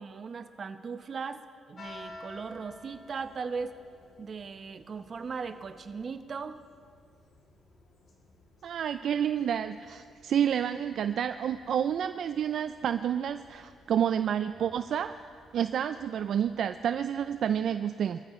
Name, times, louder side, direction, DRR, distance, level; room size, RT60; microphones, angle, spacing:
voice 1, 0.0-3.8 4.2-6.6, right 5 dB, 45° right, 9 dB, 0.8 m, -38 dB
sound 1, 1.8-17.7, left 2 dB, 55° left, 2.6 m, -55 dB
voice 2, 8.6-15.2 15.5-18.2, right 9 dB, 65° right, 10 dB, 0.4 m, -29 dB
23.0 x 14.0 x 3.2 m, 2.2 s
cardioid pair, 90°, 0 cm